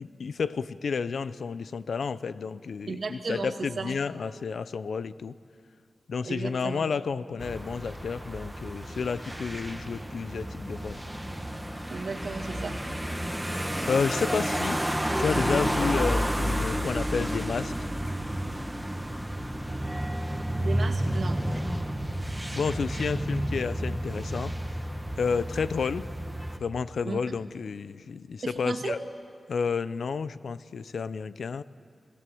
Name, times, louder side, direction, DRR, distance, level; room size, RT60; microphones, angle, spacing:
voice 1, 0.0-5.4 6.1-11.1 13.9-14.8 15.2-17.7 22.5-24.5 25.2-26.1 26.6-29.0 29.5-31.6, left 5 dB, 80° left, 15 dB, 0.7 m, -31 dB
voice 2, 2.9-3.9 6.2-6.9 11.9-12.8 20.6-21.4 27.0-27.2 28.4-29.0, right 4 dB, 70° right, 5 dB, 2.1 m, -34 dB
sound 1, 7.4-26.6, equal, 5° right, 1.6 m, -31 dB
27.0 x 18.5 x 7.8 m, 2.2 s
wide cardioid pair, 80°, 0 cm